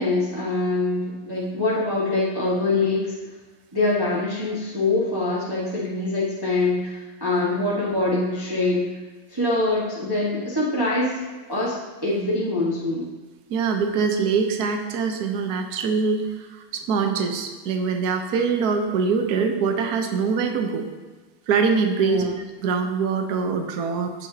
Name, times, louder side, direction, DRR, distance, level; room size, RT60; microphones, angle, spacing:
voice 1, 0.0-3.1 3.7-8.9 9.3-11.2 11.5-13.1 22.0-22.3, left 2 dB, 15° right, -7 dB, 1.2 m, -24 dB
voice 2, 13.5-20.9 21.5-22.3 22.6-24.1, right 5 dB, 60° right, 5 dB, 1.2 m, -23 dB
15.5 x 6.1 x 2.8 m, 1.3 s
omnidirectional pair, 2.3 m